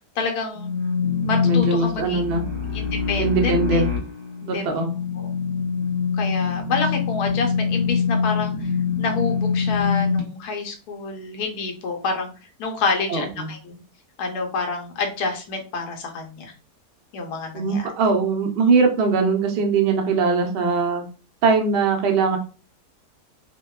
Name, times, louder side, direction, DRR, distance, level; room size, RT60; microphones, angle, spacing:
voice 1, 0.2-0.7 1.2-3.8 4.5-4.7 5.2-5.3 6.1-8.7 9.0-12.3 12.6-13.8 14.2-16.5 17.1-17.9, left 4 dB, 75° left, 2 dB, 1.2 m, -28 dB
sound 1, 0.6-10.2, left 6 dB, 35° right, 0.9 m, -24 dB
voice 2, 1.4-2.5 3.2-3.9 4.4-4.9 13.1-13.5 17.5-21.0 21.4-22.4, right 4 dB, 70° right, 3 dB, 0.5 m, -21 dB
2.7 x 2.2 x 2.2 m, 0.35 s
omnidirectional pair, 1.7 m